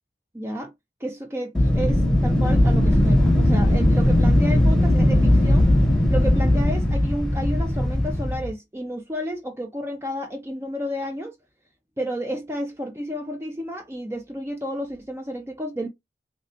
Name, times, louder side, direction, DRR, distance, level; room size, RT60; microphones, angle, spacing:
voice 1, 0.3-0.7 1.0-5.7 6.1-11.4 12.0-15.9, equal, 15° right, 0.4 m, -31 dB
Wind, 1.5-8.5, left 1 dB, 5° left, 0.9 m, -18 dB
3.1 x 3.1 x 2.7 m
head